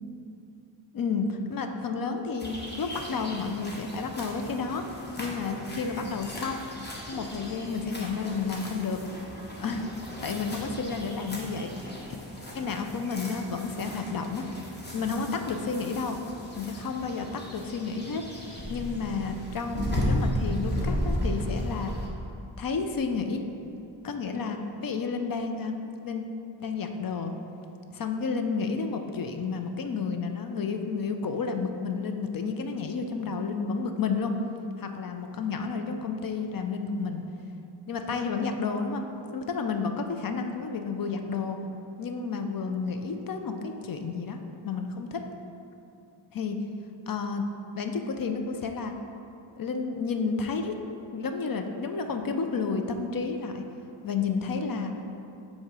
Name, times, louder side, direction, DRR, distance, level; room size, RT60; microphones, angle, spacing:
voice 1, 0.9-6.6 7.1-9.0 9.6-11.7 12.5-14.5 14.9-16.2 16.6-18.2 18.7-21.9 22.6-23.4 24.0-25.8 26.0-26.2 26.6-27.3 27.9-34.3 34.8-37.2 37.9-39.1 39.3-41.6 42.0-44.4 44.6-45.3 46.3-46.6 47.1-47.4 47.7-48.9 49.6-50.7 51.1-53.6 54.0-54.9, left 4 dB, 50° left, 5 dB, 0.4 m, -31 dB
sound 1, 2.4-22.1, equal, 25° left, 0.9 m, -35 dB
7.8 x 2.8 x 4.7 m, 2.8 s
wide cardioid pair, 145°, 45 cm